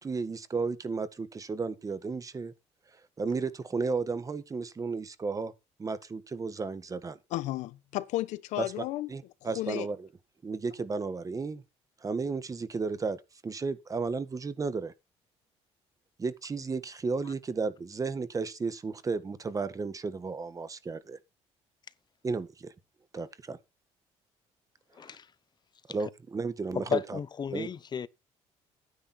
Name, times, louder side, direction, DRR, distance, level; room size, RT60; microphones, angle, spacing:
voice 1, 0.0-2.5 3.2-5.5 5.8-7.2 8.6-8.7 9.1-10.1 10.4-11.6 12.0-14.9 16.2-21.2 22.2-22.7 23.1-23.6 25.9-27.2 27.5-27.7, right 4 dB, 30° right, 1.6 m, -33 dB
voice 2, 7.3-9.1 9.4-9.9, left 16 dB, 85° left, 1.1 m, -33 dB
voice 3, 24.9-25.3 26.7-28.1, left 7 dB, 35° left, 0.9 m, -33 dB
11.5 x 9.8 x 4.4 m
cardioid pair, 100°, 12 cm